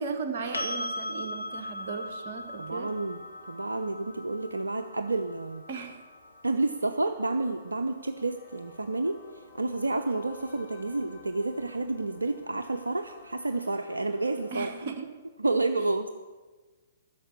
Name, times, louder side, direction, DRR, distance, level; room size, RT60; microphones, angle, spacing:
voice 1, 0.0-2.9 5.7-6.0 14.5-15.1, right 5 dB, 45° right, 6 dB, 1.6 m, -36 dB
sound 1, 0.5-8.4 11.2-11.3, left 1 dB, 80° left, 1.4 m, -39 dB
sound 2, 1.3-14.8, left 4 dB, 45° left, 3.8 m, -55 dB
voice 2, 2.6-3.2 3.5-5.6 6.4-9.2 9.5-14.7 15.4-16.1, right 2 dB, 80° right, 8 dB, 0.6 m, -30 dB
11.0 x 6.8 x 8.3 m, 1.3 s
figure-of-eight pair, 120°, 0 cm